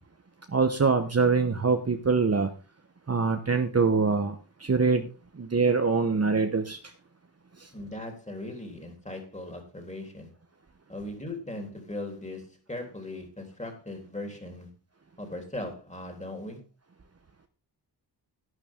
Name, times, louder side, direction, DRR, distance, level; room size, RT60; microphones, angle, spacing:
voice 1, 0.5-2.5 3.1-5.1 5.3-6.8 7.6-7.7, right 4 dB, 35° right, 7 dB, 1.1 m, -24 dB
voice 2, 7.7-10.3 10.9-14.7 15.2-16.6, left 1 dB, 15° left, 3 dB, 3.5 m, -38 dB
11.5 x 11.0 x 3.7 m, 0.32 s
wide cardioid pair, 130°, 42 cm